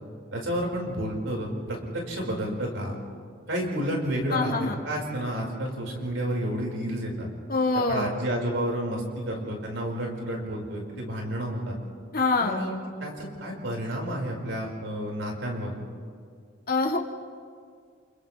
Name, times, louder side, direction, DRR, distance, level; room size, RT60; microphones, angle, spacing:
voice 1, 0.3-3.0 3.5-7.3 7.7-11.8 12.4-15.7, equal, 75° right, -1 dB, 5.2 m, -30 dB
voice 2, 4.3-4.8 7.5-8.2 12.1-12.6 16.7-17.0, left 3 dB, 50° left, 1 dB, 1.9 m, -25 dB
29.5 x 29.0 x 3.4 m, 2.2 s
head